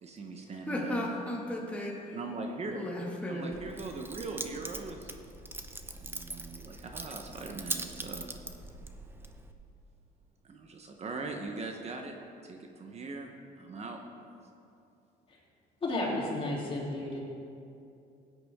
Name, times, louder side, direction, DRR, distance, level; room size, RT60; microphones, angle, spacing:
voice 1, 0.0-1.1 2.1-2.9 3.3-5.1 5.9-8.3 10.4-12.2 12.4-13.3 13.6-14.0, right 3 dB, 40° right, 3 dB, 1.0 m, -40 dB
voice 2, 0.7-2.1 2.7-3.5, left 1 dB, 5° left, -4 dB, 2.0 m, -35 dB
Keys jangling, 3.5-9.5, right 2 dB, 15° right, 0.7 m, -42 dB
voice 3, 15.8-17.2, left 2 dB, 35° left, -4 dB, 3.2 m, -32 dB
16.5 x 9.5 x 3.7 m, 2.6 s
cardioid pair, 110°, 17 cm